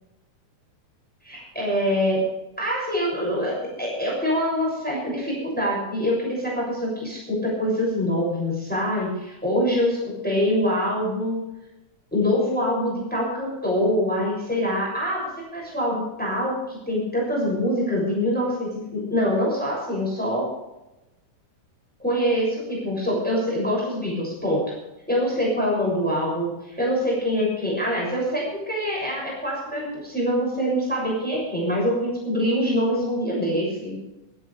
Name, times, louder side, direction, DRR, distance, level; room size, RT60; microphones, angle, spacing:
voice 1, 1.2-2.2 2.6-11.4 12.1-20.5 22.0-24.6 25.1-34.0, equal, 5° left, -3 dB, 6.4 m, -25 dB
22.0 x 13.5 x 3.3 m, 0.97 s
omnidirectional pair, 3.6 m